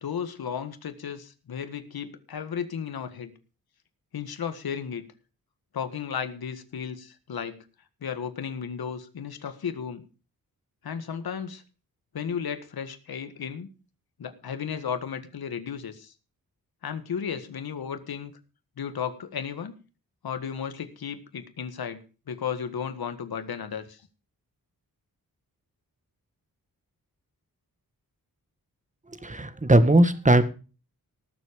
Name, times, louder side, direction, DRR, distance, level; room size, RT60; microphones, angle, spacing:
voice 1, 0.0-3.3 4.1-5.0 5.7-7.6 8.0-10.0 10.8-11.6 12.1-13.7 14.2-16.1 16.8-18.3 18.8-19.7 20.2-24.0, left 7 dB, 80° left, 9 dB, 1.8 m, -34 dB
voice 2, 29.1-30.4, right 1 dB, 20° right, 11 dB, 1.8 m, -19 dB
18.0 x 7.5 x 5.2 m, 0.35 s
wide cardioid pair, 80°, 36 cm